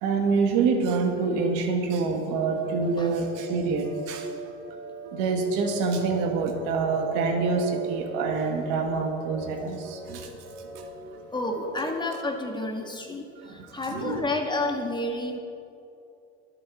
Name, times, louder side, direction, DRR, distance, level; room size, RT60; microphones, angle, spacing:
voice 1, 0.0-4.3 5.1-10.3 13.9-14.2, right 4 dB, 65° right, 4 dB, 1.9 m, -26 dB
sound 1, 2.6-12.2, right 4 dB, 50° right, 3.4 m, -40 dB
voice 2, 11.3-15.4, left 2 dB, 15° left, 3 dB, 1.6 m, -30 dB
21.0 x 7.9 x 4.2 m, 2.6 s
supercardioid pair, 95°, 33 cm